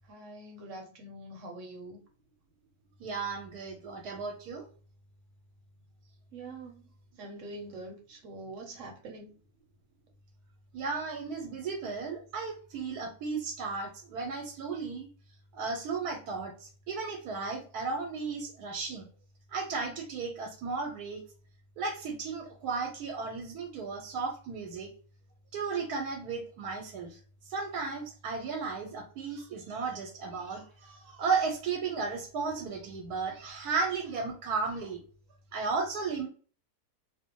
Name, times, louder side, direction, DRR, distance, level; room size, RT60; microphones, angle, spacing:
voice 1, 0.1-2.0 6.3-6.8 7.2-9.4, right 2 dB, 65° right, 2 dB, 0.9 m, -44 dB
voice 2, 3.0-4.7 10.7-15.1 15.5-19.1 19.5-21.2 21.8-24.9 25.5-27.2 27.5-35.0 35.5-36.3, right 4 dB, 90° right, 1 dB, 1.1 m, -34 dB
2.5 x 2.1 x 2.8 m, 0.40 s
omnidirectional pair, 1.6 m